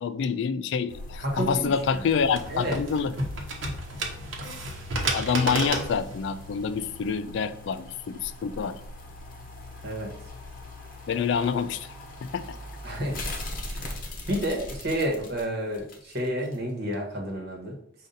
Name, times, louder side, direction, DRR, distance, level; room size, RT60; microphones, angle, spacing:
voice 1, 0.0-3.1 5.1-8.8 11.1-11.9 12.2-12.6, left 6 dB, 65° left, 13 dB, 0.3 m, -27 dB
sound 1, 0.9-16.6 16.9-17.0, left 2 dB, 45° left, 0.9 m, -41 dB
voice 2, 1.2-1.7 2.0-2.1 2.5-2.8 9.8-10.1 12.8-13.2 13.7-17.8, equal, 55° right, 1 dB, 1.2 m, -30 dB
sound 2, 1.7-7.1, right 2 dB, 75° right, 0.9 m, -33 dB
5.1 x 2.5 x 4.0 m, 0.71 s
head